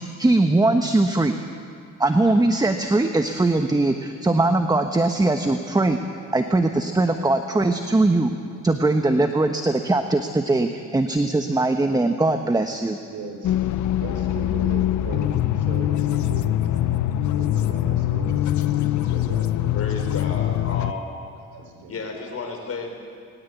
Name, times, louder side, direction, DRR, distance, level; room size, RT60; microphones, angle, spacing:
voice 1, 0.2-1.4 2.0-6.0 6.3-8.3 8.6-13.0, right 2 dB, 15° right, 6 dB, 1.1 m, -20 dB
voice 2, 13.1-13.5 14.0-17.0 17.3-19.8 21.5-21.9, right 4 dB, 70° right, 4 dB, 4.4 m, -38 dB
sound 1, 13.4-20.9, left 12 dB, 70° left, 0.9 m, -23 dB
voice 3, 18.7-19.1 19.7-21.0 21.9-23.0, left 4 dB, 50° left, 2 dB, 5.0 m, -33 dB
21.0 x 19.5 x 8.3 m, 2.2 s
cardioid pair, 90°, 30 cm